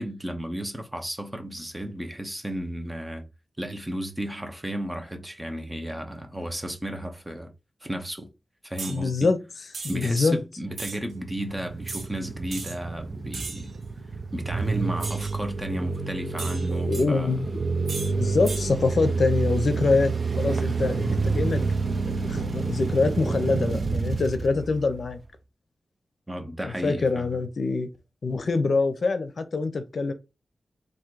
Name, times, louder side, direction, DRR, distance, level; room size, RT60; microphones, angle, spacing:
voice 1, 0.0-3.2 3.6-7.5 7.8-8.3 8.6-9.3 9.9-13.7 14.3-17.4 26.3-27.4, right 1 dB, 10° right, 0.8 m, -33 dB
voice 2, 8.8-9.4 9.9-10.4 16.7-17.5 18.1-21.6 22.2-25.2 26.6-27.9 28.2-30.1, left 4 dB, 65° left, 0.6 m, -25 dB
sound 1, 8.8-9.0 9.7-10.1 10.7-11.0 11.9-12.1 12.5-12.8 13.3-13.7 15.0-15.4 16.4-17.0 17.9-18.1 18.4-18.7, right 3 dB, 85° right, 1.1 m, -36 dB
sound 2, 10.9-25.2, right 4 dB, 50° right, 0.5 m, -29 dB
3.7 x 2.6 x 4.6 m
wide cardioid pair, 130°, 0 cm